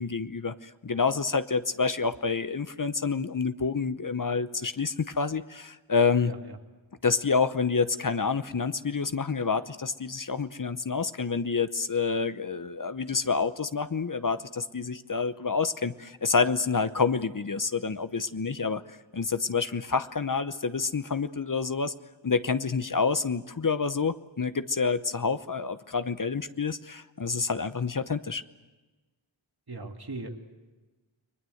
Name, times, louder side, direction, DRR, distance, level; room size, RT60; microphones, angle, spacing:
voice 1, 0.0-6.3 7.0-21.9 22.2-28.4, left 5 dB, 45° left, 12 dB, 0.9 m, -28 dB
voice 2, 6.2-6.6 29.7-30.4, right 3 dB, 55° right, 3 dB, 2.6 m, -38 dB
30.0 x 21.5 x 7.9 m, 1.2 s
wide cardioid pair, 60°, 45 cm